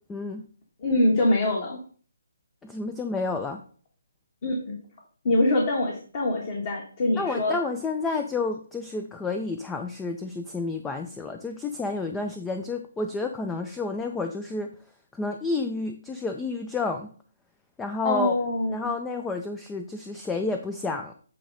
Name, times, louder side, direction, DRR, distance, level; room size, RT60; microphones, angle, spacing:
voice 1, 0.1-0.4 2.6-3.6 7.2-14.7 15.1-17.1 17.8-18.3 18.7-21.1, left 3 dB, 10° left, 5 dB, 0.5 m, -30 dB
voice 2, 0.8-1.8 4.4-4.8 5.2-7.6 18.0-18.9, left 1 dB, 40° left, -1 dB, 1.5 m, -24 dB
8.6 x 3.1 x 5.2 m, 0.43 s
figure-of-eight pair, 140°, 0 cm